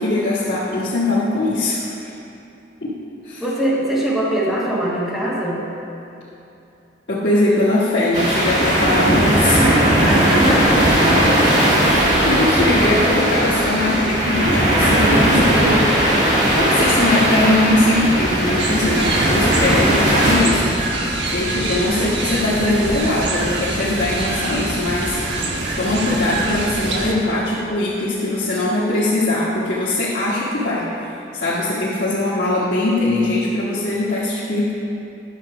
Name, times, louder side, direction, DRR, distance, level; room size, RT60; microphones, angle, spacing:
voice 1, 0.0-2.1 2.8-3.0 3.2-3.4 7.1-9.7 11.8-20.7 21.0-25.4 25.8-34.7, left 2 dB, 80° left, -9 dB, 1.4 m, -21 dB
voice 2, 3.4-5.7 9.6-11.0, right 1 dB, ahead, -8 dB, 1.7 m, -22 dB
sound 1, 8.1-20.4, right 1 dB, 40° right, 2.1 m, -17 dB
sound 2, 18.6-27.1, right 2 dB, 80° right, 1.2 m, -25 dB
10.5 x 6.9 x 4.8 m, 2.8 s
head